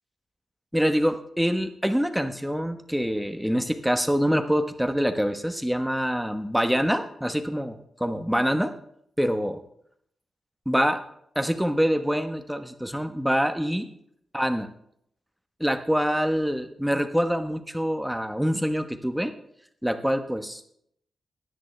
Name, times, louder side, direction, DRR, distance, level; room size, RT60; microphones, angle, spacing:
voice 1, 0.7-8.7 9.2-9.6 10.7-11.0 11.3-13.9 14.3-14.7 15.6-19.3 19.8-20.7, equal, 5° right, 8 dB, 1.2 m, -25 dB
16.5 x 10.5 x 3.3 m, 0.70 s
cardioid pair, 70°, 0 cm